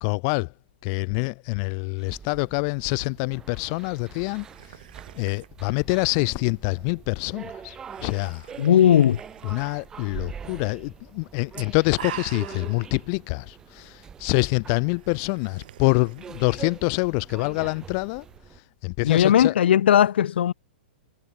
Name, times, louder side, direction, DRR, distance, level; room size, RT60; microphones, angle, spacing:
voice 1, 0.0-0.5 0.8-4.8 5.1-7.8 8.0-8.5 9.4-18.2 18.8-19.5, left 38 dB, 25° left, 0.4 m, -26 dB
sound 1, 2.0-18.6, right 7 dB, 10° right, 4.4 m, -44 dB
sound 2, 2.1-18.4, right 12 dB, 50° right, 1.6 m, -47 dB
voice 2, 8.6-9.2 19.0-20.5, left 10 dB, 65° left, 0.7 m, -17 dB
hypercardioid pair, 175°, 6 cm